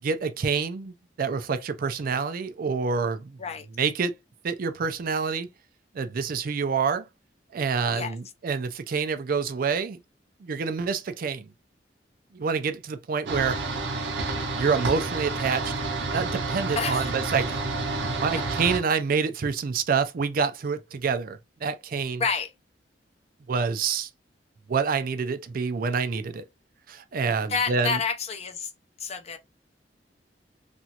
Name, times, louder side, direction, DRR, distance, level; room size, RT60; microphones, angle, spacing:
voice 1, 0.0-3.4 3.7-4.2 4.4-5.5 5.9-7.0 7.5-10.0 10.4-11.5 12.3-13.6 14.5-15.7 16.1-17.6 18.1-22.2 23.5-24.1 24.7-26.4 26.9-28.0, right 5 dB, 55° right, 0.4 m, -27 dB
sound 1, 13.3-18.8, right 3 dB, 80° right, 0.7 m, -29 dB
voice 2, 16.8-17.1 22.2-22.5 27.5-28.7 29.0-29.4, left 5 dB, 35° left, 0.5 m, -29 dB
3.0 x 2.4 x 2.8 m
head